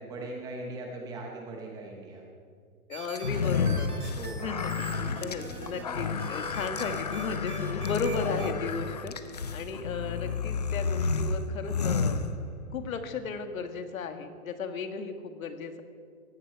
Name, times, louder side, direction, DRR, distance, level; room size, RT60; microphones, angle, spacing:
voice 1, 0.0-2.2 4.1-4.5, right 2 dB, 10° right, 1 dB, 0.7 m, -39 dB
voice 2, 2.9-4.0 4.4-9.1 9.5-12.3 12.7-15.8, left 5 dB, 65° left, 8 dB, 1.8 m, -35 dB
sound 1, 2.9-8.5, right 4 dB, 90° right, 3.5 m, -42 dB
sound 2, 3.1-12.8, left 5 dB, 30° left, 0.4 m, -31 dB
18.5 x 15.0 x 4.7 m, 2.2 s
hypercardioid pair, 160°, 44 cm